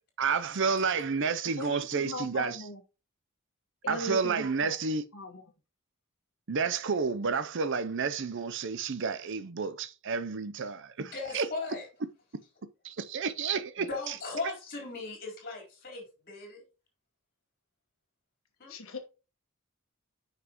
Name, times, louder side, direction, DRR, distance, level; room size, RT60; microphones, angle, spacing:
voice 1, 0.2-2.6 3.9-5.0 6.5-11.5 12.8-13.9, right 5 dB, 55° right, 0.6 m, -30 dB
voice 2, 1.6-2.8 3.8-4.7 5.1-5.4 18.7-19.0, left 1 dB, 65° left, 1.5 m, -38 dB
voice 3, 11.0-11.9 13.8-16.6 18.6-18.8, left 3 dB, 45° left, 3.9 m, -38 dB
9.3 x 5.8 x 3.0 m
head